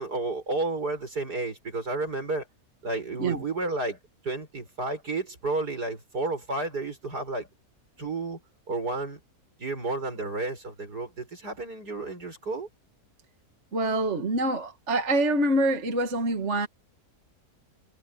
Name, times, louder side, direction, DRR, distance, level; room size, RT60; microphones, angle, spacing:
voice 1, 0.0-2.4 2.8-4.0 4.2-7.5 8.0-8.4 8.7-9.2 9.6-12.7, right 2 dB, 80° right, 7.3 m, -31 dB
voice 2, 13.7-16.7, right 1 dB, 45° right, 2.1 m, -25 dB
omnidirectional pair, 1.7 m